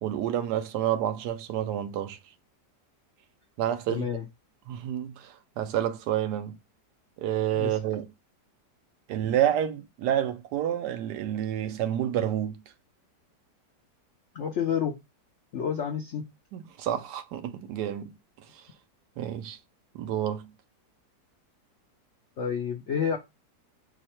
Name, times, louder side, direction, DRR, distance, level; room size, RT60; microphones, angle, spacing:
voice 1, 0.0-2.2 3.6-4.1 4.7-6.6 7.2-8.1 9.1-12.6 16.5-18.2 18.5-18.7 19.2-19.6 19.9-20.5, right 11 dB, 75° right, 1.1 m, -29 dB
voice 2, 3.9-4.2 7.6-7.8 14.3-15.0 15.5-16.3 22.4-23.2, left 7 dB, 70° left, 0.7 m, -29 dB
4.7 x 2.2 x 4.3 m
omnidirectional pair, 1.8 m